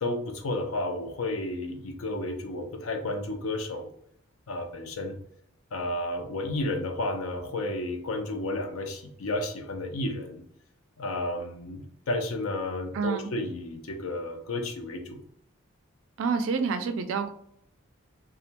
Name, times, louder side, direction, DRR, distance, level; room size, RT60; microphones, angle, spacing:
voice 1, 0.0-3.9 4.5-5.2 5.7-10.4 11.0-15.2, left 2 dB, 80° left, 5 dB, 0.5 m, -32 dB
voice 2, 12.9-13.3 16.2-17.3, right 5 dB, 65° right, 8 dB, 0.3 m, -28 dB
2.3 x 2.1 x 2.8 m, 0.67 s
head